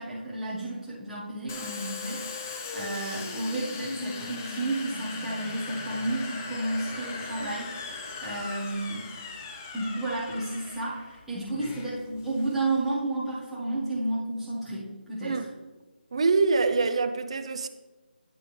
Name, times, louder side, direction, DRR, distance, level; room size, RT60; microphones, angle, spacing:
voice 1, 0.0-7.7 8.2-9.0 9.7-15.5, right 2 dB, ahead, 1.4 m, -32 dB
Domestic sounds home sounds, 1.5-12.9, left 4 dB, 15° left, 0.6 m, -39 dB
voice 2, 16.1-17.7, right 4 dB, 35° right, 0.6 m, -25 dB
10.5 x 9.5 x 3.3 m
figure-of-eight pair, 170°, 6 cm